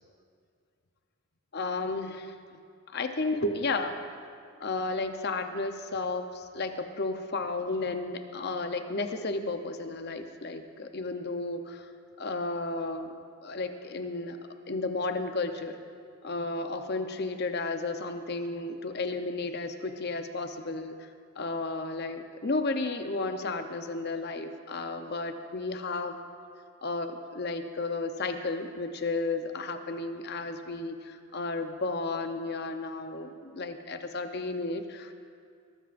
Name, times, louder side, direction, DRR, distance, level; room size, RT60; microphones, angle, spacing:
voice 1, 1.5-2.4 2.9-3.9 4.6-11.9 12.2-13.1 13.4-14.4 14.7-15.8 16.2-21.1 21.4-26.2 26.8-35.1, left 3 dB, 45° left, 7 dB, 0.7 m, -33 dB
21.5 x 13.5 x 2.6 m, 2.2 s
head